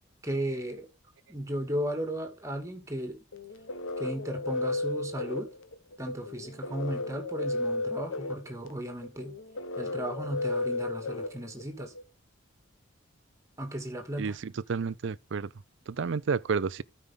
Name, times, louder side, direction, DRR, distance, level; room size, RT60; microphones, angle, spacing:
voice 1, 0.2-0.9 1.3-3.2 4.0-5.5 6.0-9.4 9.8-11.9 13.6-14.4, right 1 dB, 15° right, 2.3 m, -35 dB
sound 1, 3.3-12.0, left 2 dB, 70° left, 1.2 m, -34 dB
voice 2, 14.2-15.5 15.9-16.8, right 5 dB, 60° right, 0.4 m, -31 dB
13.0 x 5.5 x 3.8 m
head